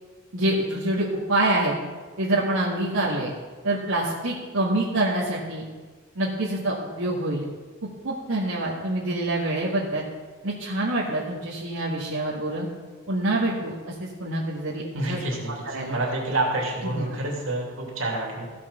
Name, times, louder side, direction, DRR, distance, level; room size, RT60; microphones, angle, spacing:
voice 1, 0.3-1.8 2.2-3.3 3.6-5.6 6.2-7.4 8.0-10.1 10.4-12.7 13.1-15.3 15.6-16.0 16.8-17.2, right 1 dB, 85° right, -7 dB, 1.9 m, -26 dB
voice 2, 14.9-18.5, right 2 dB, 70° right, -2 dB, 2.9 m, -28 dB
15.5 x 6.0 x 5.8 m, 1.4 s
head